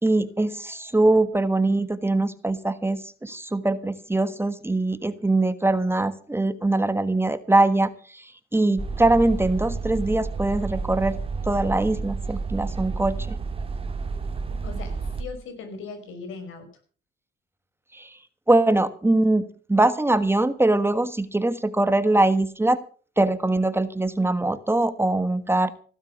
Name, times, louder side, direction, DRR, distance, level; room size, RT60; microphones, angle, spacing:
voice 1, 0.0-11.2 11.4-13.4 17.9-18.2 18.5-22.8 23.2-25.7, right 2 dB, 10° right, 12 dB, 1.4 m, -22 dB
sound 1, 8.8-15.2, right 4 dB, 30° right, 2.7 m, -30 dB
voice 2, 14.6-16.7, left 4 dB, 85° left, 8 dB, 5.5 m, -38 dB
16.5 x 12.5 x 6.2 m, 0.42 s
cardioid pair, 90°, 20 cm